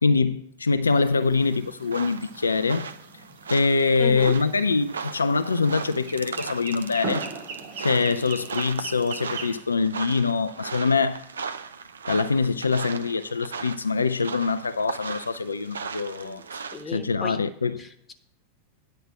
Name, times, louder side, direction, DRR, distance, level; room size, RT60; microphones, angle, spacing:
voice 1, 0.0-2.9 3.5-7.3 7.8-11.2 12.1-16.4 16.9-17.8, left 4 dB, 75° left, 0.4 m, -24 dB
sound 1, 0.9-9.6, right 4 dB, 50° right, 2.0 m, -40 dB
sound 2, 1.4-16.8, right 5 dB, 70° right, 0.6 m, -37 dB
voice 2, 4.0-4.4 16.2-16.4 16.7-17.4 17.8-18.1, left 3 dB, 15° left, 1.2 m, -35 dB
9.5 x 4.9 x 7.4 m
figure-of-eight pair, 90°, 0 cm